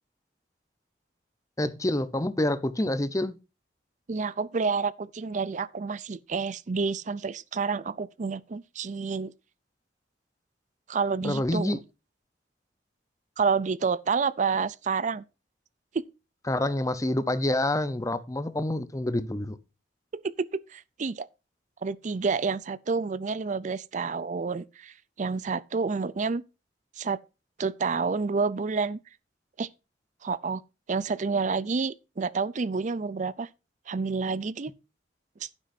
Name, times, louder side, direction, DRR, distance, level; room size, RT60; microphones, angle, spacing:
voice 1, 1.6-3.3 11.2-11.8 16.5-19.6, left 1 dB, 15° left, 0.7 m, -27 dB
voice 2, 4.1-9.3 10.9-11.8 13.4-15.2 15.9-16.0 20.1-21.3 21.8-26.4 27.0-27.2 27.6-29.0 29.6-29.7 30.2-30.6 30.9-33.5 33.9-34.7 35.4-35.5, right 4 dB, 40° right, 0.4 m, -29 dB
11.5 x 9.8 x 2.7 m
head